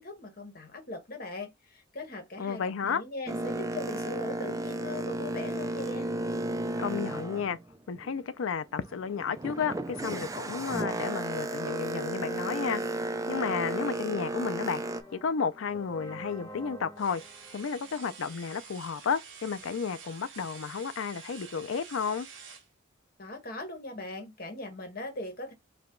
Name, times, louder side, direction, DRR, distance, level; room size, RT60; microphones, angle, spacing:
voice 1, 0.0-6.1 23.2-25.5, left 2 dB, 45° left, 1.3 m, -40 dB
voice 2, 2.4-3.0 6.8-7.6 7.9-12.8 13.3-14.8 15.1-17.2 17.5-22.3, left 6 dB, 80° left, 0.5 m, -32 dB
Boat Water vehicle, 3.3-8.3 8.7-15.0, right 1 dB, 15° right, 0.3 m, -34 dB
sound 1, 12.1-18.8, right 1 dB, 15° left, 0.7 m, -50 dB
sound 2, 17.0-22.7, right 6 dB, 65° right, 1.0 m, -48 dB
4.8 x 2.3 x 3.7 m
head